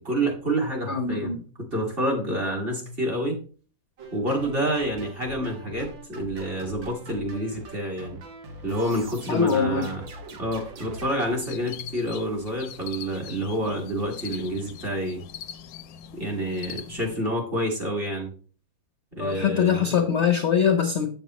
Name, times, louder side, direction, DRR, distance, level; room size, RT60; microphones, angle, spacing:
voice 1, 0.0-3.4 4.1-8.2 8.6-10.0 10.4-15.2 16.1-18.3 19.2-19.9, right 1 dB, 30° right, -1 dB, 2.1 m, -28 dB
voice 2, 0.9-1.4 9.3-9.9 19.2-21.1, left 7 dB, 55° left, 5 dB, 0.8 m, -23 dB
sound 1, 4.0-11.3, right 2 dB, 85° right, 1.9 m, -42 dB
sound 2, 11.2-17.2, left 9 dB, 75° left, 1.2 m, -42 dB
8.1 x 6.7 x 3.0 m, 0.40 s
omnidirectional pair, 2.0 m